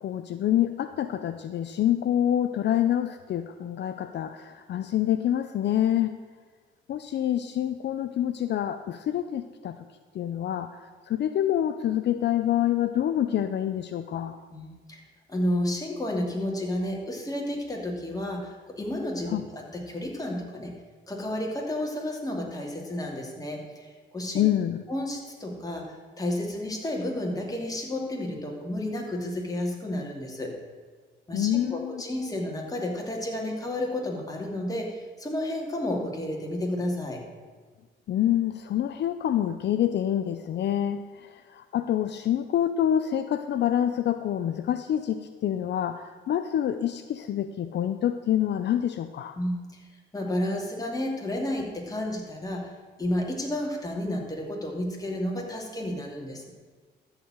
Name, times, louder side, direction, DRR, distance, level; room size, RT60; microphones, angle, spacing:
voice 1, 0.0-6.2 6.9-9.8 10.1-14.4 19.3-19.4 24.3-24.8 31.3-32.0 38.1-49.4, left 11 dB, 60° left, 10 dB, 0.6 m, -27 dB
voice 2, 14.5-15.0 15.3-20.7 21.1-24.4 24.9-30.5 31.3-37.2 49.4-49.6 50.1-52.7 53.0-56.5, left 1 dB, 20° left, 0 dB, 2.8 m, -31 dB
13.5 x 4.9 x 8.9 m, 1.5 s
cardioid pair, 90°, 20 cm